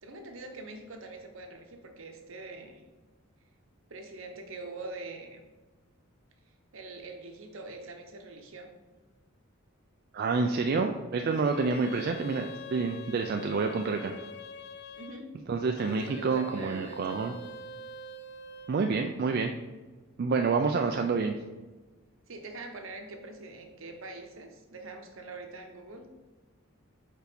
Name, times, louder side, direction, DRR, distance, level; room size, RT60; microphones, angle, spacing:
voice 1, 0.0-2.8 3.9-5.4 6.7-8.8 11.9-12.1 14.9-15.3 15.8-17.2 20.9-21.0 22.3-26.0, right 2 dB, 70° right, 4 dB, 0.9 m, -44 dB
voice 2, 10.1-12.4 12.7-14.1 15.5-17.3 18.7-19.5 20.2-21.3, right 4 dB, 45° right, 4 dB, 0.3 m, -28 dB
sound 1, 11.2-15.2 15.8-18.8, left 2 dB, 50° left, 0.4 m, -45 dB
4.7 x 4.6 x 5.2 m, 1.2 s
head